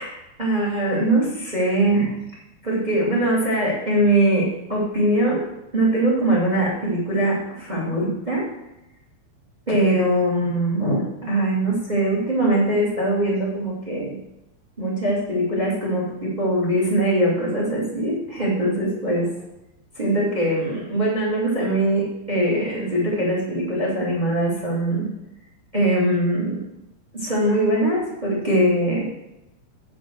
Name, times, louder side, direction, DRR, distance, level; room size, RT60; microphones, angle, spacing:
voice 1, 0.0-2.2 2.6-5.4 5.7-8.4 9.7-14.2 14.8-19.3 19.9-25.1 25.7-26.6 27.1-29.1, right 1 dB, 15° right, -4 dB, 2.3 m, -22 dB
7.7 x 6.7 x 6.3 m, 0.89 s
omnidirectional pair, 4.6 m